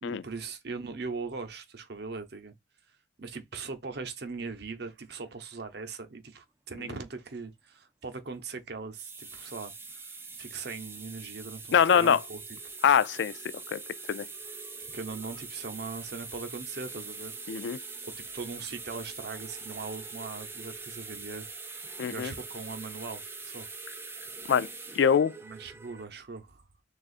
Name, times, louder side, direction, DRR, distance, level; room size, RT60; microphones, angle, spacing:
voice 1, 0.0-2.5 3.2-10.0 10.3-12.4 14.9-17.3 18.0-21.5 22.1-23.7 25.4-26.6, right 4 dB, 55° right, 0.7 m, -40 dB
sound 1, 8.8-26.1, right 4 dB, 10° right, 0.4 m, -43 dB
voice 2, 11.7-12.2 12.8-13.3 13.7-13.8 14.1-14.2 17.5-17.8 22.0-22.3 24.5-24.7 24.9-25.4, left 7 dB, 65° left, 0.3 m, -23 dB
6.4 x 2.4 x 2.4 m
head